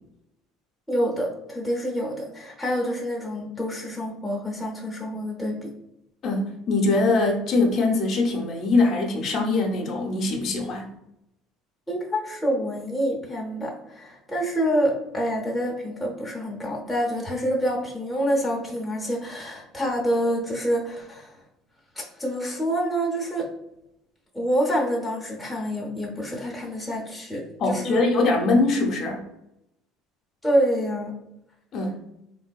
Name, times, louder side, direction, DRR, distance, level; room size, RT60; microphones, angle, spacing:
voice 1, 0.9-5.7 11.9-21.4 22.0-23.5 24.3-28.0 30.4-31.1, equal, 5° left, -2 dB, 0.7 m, -27 dB
voice 2, 6.2-10.9 27.6-29.3 31.7-32.0, left 3 dB, 45° left, 1 dB, 0.7 m, -22 dB
3.3 x 2.6 x 2.3 m, 0.83 s
supercardioid pair, 105°, 0 cm